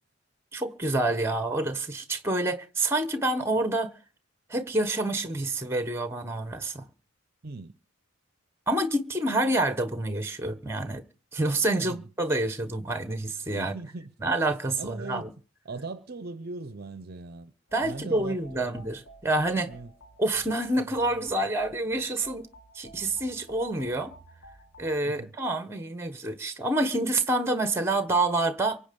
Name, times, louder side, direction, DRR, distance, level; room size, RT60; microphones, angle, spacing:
voice 1, 0.5-4.0 4.5-6.8 8.7-11.0 11.3-13.7 14.2-15.3 17.7-19.7 20.2-22.5 22.7-24.1 24.8-28.8, right 2 dB, 10° right, 1.1 m, -27 dB
voice 2, 7.4-7.8 11.8-12.1 13.6-14.1 14.8-15.3 15.6-17.5 17.8-18.7 19.6-19.9 25.0-25.3, right 3 dB, 45° right, 0.7 m, -39 dB
sound 1, 17.7-25.0, right 1 dB, 65° left, 2.1 m, -52 dB
24.0 x 8.5 x 5.3 m
head